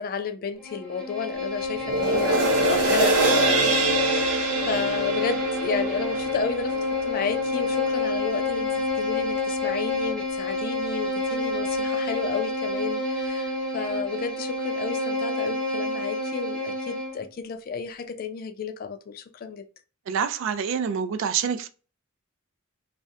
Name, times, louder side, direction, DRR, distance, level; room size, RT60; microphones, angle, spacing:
voice 1, 0.0-19.7, left 5 dB, 45° left, 0.3 m, -32 dB
Bowed string instrument, 0.6-17.2, left 2 dB, 5° left, 0.6 m, -28 dB
sound 1, 1.8-8.3 8.8-8.9, right 2 dB, 85° right, 0.7 m, -25 dB
voice 2, 20.1-21.7, right 7 dB, 60° right, 0.3 m, -26 dB
2.7 x 2.1 x 2.3 m
head